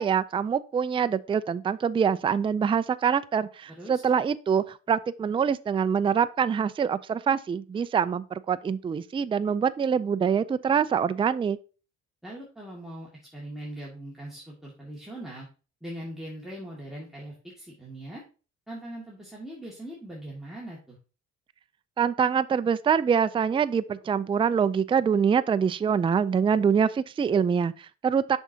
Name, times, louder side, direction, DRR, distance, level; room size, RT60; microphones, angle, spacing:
voice 1, 0.0-11.6 22.0-28.4, right 7 dB, 20° right, 0.3 m, -25 dB
voice 2, 3.7-4.0 12.2-15.5 15.8-18.2 18.7-21.0, right 1 dB, ahead, 2.0 m, -41 dB
7.1 x 6.2 x 2.8 m
cardioid pair, 90°, 30 cm